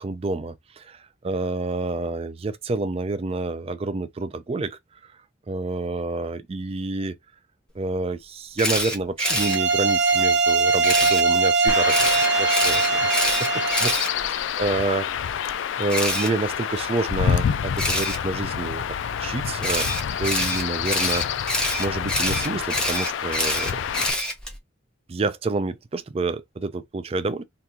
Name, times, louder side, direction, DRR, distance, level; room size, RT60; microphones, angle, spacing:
voice 1, 0.0-4.8 5.5-7.1 7.7-11.9 12.4-13.5 13.8-15.5 15.8-24.1 25.1-27.4, right 3 dB, 30° right, 0.3 m, -28 dB
Camera, 8.6-9.6 10.8-11.2 11.9-14.7 15.9-16.3 17.8-18.2 19.6-24.6, left 1 dB, 5° left, 0.8 m, -26 dB
sound 1, 9.2-14.0, right 4 dB, 60° right, 0.7 m, -21 dB
Chirp tweet / Wind / Stream, 11.7-24.1, left 8 dB, 70° left, 0.3 m, -28 dB
2.9 x 2.4 x 3.5 m
head